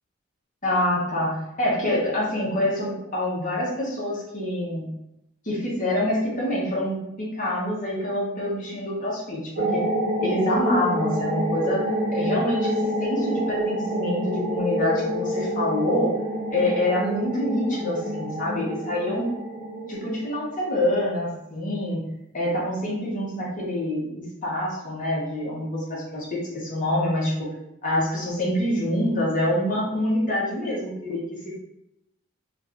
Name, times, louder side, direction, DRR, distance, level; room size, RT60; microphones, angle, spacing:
voice 1, 0.6-4.9 5.4-9.8 10.2-16.1 16.5-19.3 19.9-22.0 22.3-27.5 27.8-31.5, left 1 dB, 40° left, -5 dB, 1.0 m, -26 dB
sound 1, 9.6-20.7, equal, 50° right, 0.6 m, -28 dB
2.5 x 2.5 x 3.4 m, 0.87 s
head